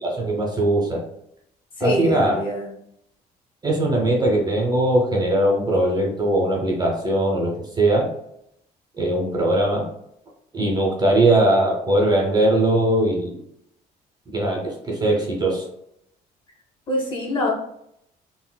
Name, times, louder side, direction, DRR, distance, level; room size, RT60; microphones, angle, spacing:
voice 1, 0.0-1.0 1.8-2.4 3.6-8.1 9.0-9.9 10.5-13.4 14.3-15.6, right 1 dB, 25° right, -1 dB, 0.7 m, -20 dB
voice 2, 1.8-2.7 16.9-17.5, left 1 dB, 30° left, -2 dB, 1.1 m, -24 dB
3.9 x 2.0 x 2.2 m, 0.74 s
cardioid pair, 110°, 17 cm